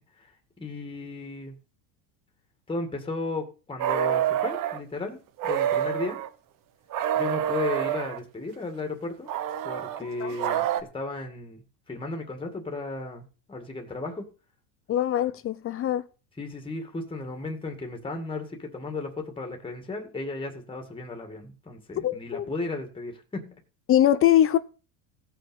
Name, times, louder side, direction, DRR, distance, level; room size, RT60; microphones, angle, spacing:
voice 1, 0.6-1.6 2.7-6.2 7.2-9.3 9.6-10.7 10.9-14.3 16.4-23.6, left 3 dB, 10° left, 2.0 m, -35 dB
sound 1, 3.8-4.8 5.4-6.3 6.9-8.2 9.3-10.8, right 10 dB, 45° right, 1.2 m, -27 dB
voice 2, 14.9-16.1 22.0-22.5 23.9-24.6, left 11 dB, 30° left, 0.6 m, -22 dB
16.5 x 5.8 x 5.3 m
supercardioid pair, 125°, 47 cm